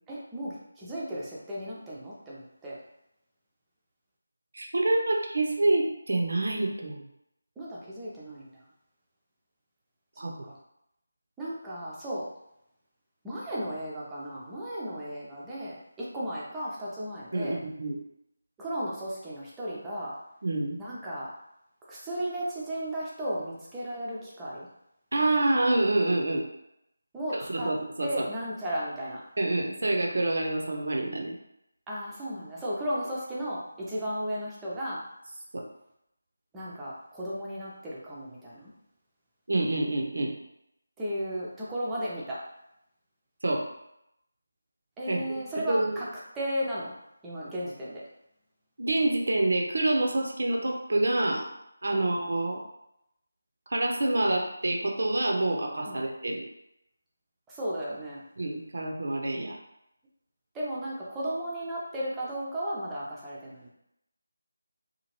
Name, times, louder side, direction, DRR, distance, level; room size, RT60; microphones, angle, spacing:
voice 1, 0.1-2.8 7.6-8.5 10.5-10.6 11.4-12.2 13.2-17.6 18.6-20.1 20.8-21.3 21.9-24.7 27.1-27.7 28.0-29.2 31.9-35.0 36.5-38.7 41.0-42.4 45.0-46.1 46.3-46.9 47.2-48.0 51.9-52.1 55.9-56.0 57.5-58.2 60.5-63.7, equal, 10° right, -8 dB, 0.5 m, -35 dB
voice 2, 4.5-7.0 10.2-10.3 17.3-18.0 20.4-20.8 25.1-26.5 27.3-28.3 29.4-31.4 35.5-35.6 39.5-40.4 43.4-43.7 45.1-45.2 45.7-45.9 48.8-51.5 51.8-52.6 53.7-56.4 58.4-59.6, right 2 dB, 55° right, 1 dB, 0.5 m, -27 dB
2.7 x 2.4 x 2.9 m, 0.81 s
figure-of-eight pair, 160°, 0 cm